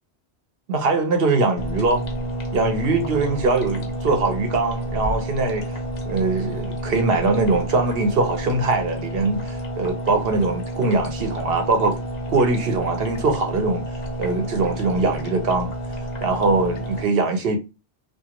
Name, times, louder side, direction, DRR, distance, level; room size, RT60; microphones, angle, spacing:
voice 1, 0.7-2.0 2.5-5.7 6.1-12.0 12.3-13.9 14.2-15.7 16.2-17.6, right 3 dB, 65° right, 0.9 m, -22 dB
sound 1, 1.6-17.0, right 1 dB, 50° left, 0.6 m, -30 dB
2.4 x 2.4 x 2.8 m
omnidirectional pair, 1.1 m